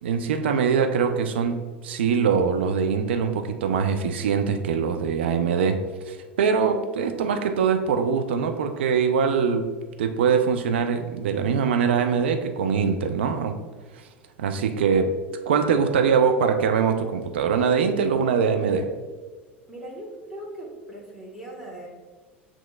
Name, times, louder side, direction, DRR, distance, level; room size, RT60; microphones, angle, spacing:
voice 1, 0.0-9.7 10.0-13.6 14.4-15.2 15.5-18.9, right 6 dB, 70° right, 6 dB, 0.5 m, -23 dB
voice 2, 19.7-21.9, right 1 dB, 5° right, -4 dB, 1.3 m, -39 dB
7.6 x 3.0 x 2.3 m, 1.4 s
figure-of-eight pair, 75°, 6 cm